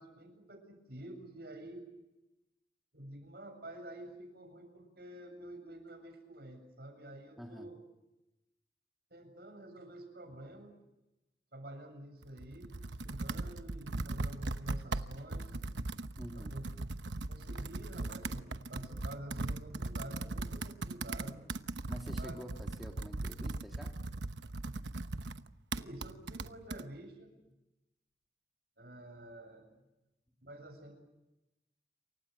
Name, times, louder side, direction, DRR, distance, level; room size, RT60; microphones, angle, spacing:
voice 1, 0.0-1.9 2.9-7.8 9.1-10.8 11.5-12.8 13.0-15.5 16.3-16.6 17.3-21.4 22.1-22.4 25.7-27.3 28.8-29.7 30.4-30.9, right 1 dB, 60° right, 6 dB, 7.4 m, -49 dB
voice 2, 7.4-7.7 16.2-16.6 21.9-23.9, equal, ahead, 1 dB, 2.1 m, -47 dB
Computer keyboard, 12.2-26.8, right 2 dB, 80° right, 1.0 m, -39 dB
28.5 x 24.0 x 6.6 m, 0.96 s
head